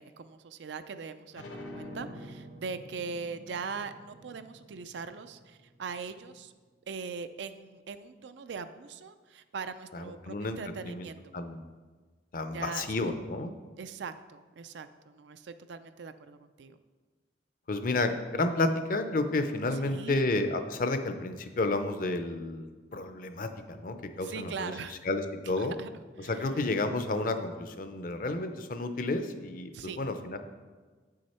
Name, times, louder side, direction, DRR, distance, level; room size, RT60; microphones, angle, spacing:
voice 1, 0.0-6.5 6.9-11.2 12.5-12.9 13.8-16.8 19.8-20.3 24.1-25.0 25.4-25.9 26.2-26.5 29.7-30.0, right 5 dB, 70° right, 11 dB, 0.4 m, -41 dB
sound 1, 1.3-6.6, left 1 dB, 85° left, 1.2 m, -47 dB
voice 2, 9.9-10.6 10.8-11.1 11.3-11.6 12.3-13.5 17.7-24.7 25.0-25.7 26.2-30.4, left 2 dB, 45° left, 8 dB, 0.5 m, -31 dB
7.7 x 6.4 x 4.3 m, 1.4 s
head